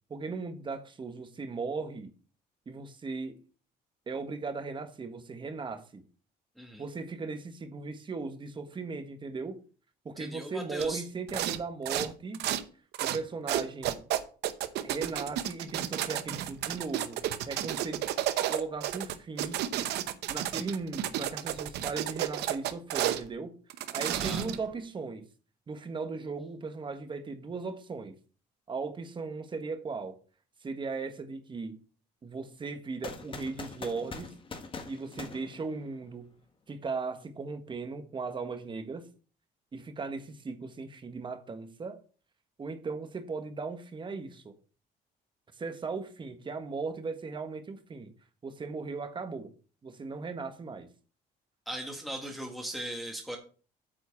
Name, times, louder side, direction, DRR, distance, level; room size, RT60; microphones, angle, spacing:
voice 1, 0.1-2.1 2.7-3.4 4.1-6.0 6.8-9.6 10.0-12.5 13.0-14.0 14.8-18.0 18.5-19.6 20.3-23.5 23.9-25.3 25.7-28.2 28.7-30.2 30.6-31.8 32.2-34.3 34.9-36.3 36.7-39.1 39.7-42.0 42.6-44.5 45.6-48.1 48.4-49.5 49.8-50.9, right 4 dB, 30° right, 1.4 m, -37 dB
voice 2, 10.2-11.0 24.1-24.4 51.6-53.4, right 1 dB, ahead, 1.7 m, -38 dB
sound 1, 10.8-10.9 11.3-11.6 11.8-12.6 12.9-13.2 13.5-23.2 23.7-24.7, right 12 dB, 80° right, 0.9 m, -31 dB
sound 2, 33.0-36.2, left 4 dB, 30° left, 1.5 m, -43 dB
8.9 x 4.5 x 7.2 m
cardioid pair, 110°, 17 cm